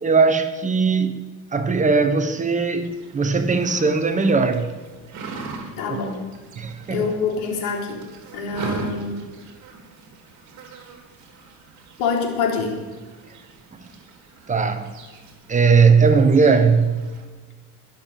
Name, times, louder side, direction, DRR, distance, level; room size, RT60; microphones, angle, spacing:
voice 1, 0.0-4.7 5.9-6.0 6.6-7.1 14.5-14.9 15.5-17.1, right 4 dB, 20° right, 1.1 m, -19 dB
sound 1, 2.8-17.3, right 4 dB, 50° right, 3.5 m, -40 dB
voice 2, 5.8-6.2 6.9-8.0 8.3-9.2 12.0-12.8, left 5 dB, 85° left, 4.0 m, -25 dB
21.5 x 7.4 x 7.4 m
cardioid pair, 145°, 37 cm